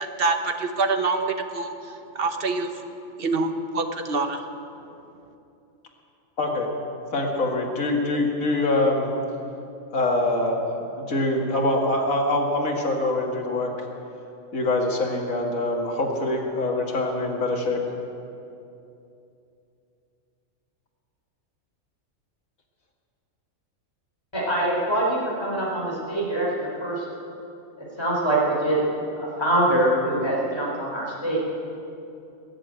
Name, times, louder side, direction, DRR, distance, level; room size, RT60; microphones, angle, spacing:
voice 1, 0.0-1.7 2.1-2.8 3.2-4.4, right 3 dB, 45° right, 7 dB, 1.1 m, -25 dB
voice 2, 6.4-6.7 7.1-9.1 9.9-10.7 11.0-13.7 14.5-17.8, left 2 dB, 85° left, 0 dB, 2.4 m, -24 dB
voice 3, 24.3-27.0 28.0-28.8 29.2-31.4, right 1 dB, 20° left, -4 dB, 4.2 m, -24 dB
20.5 x 7.5 x 9.1 m, 2.7 s
omnidirectional pair, 1.4 m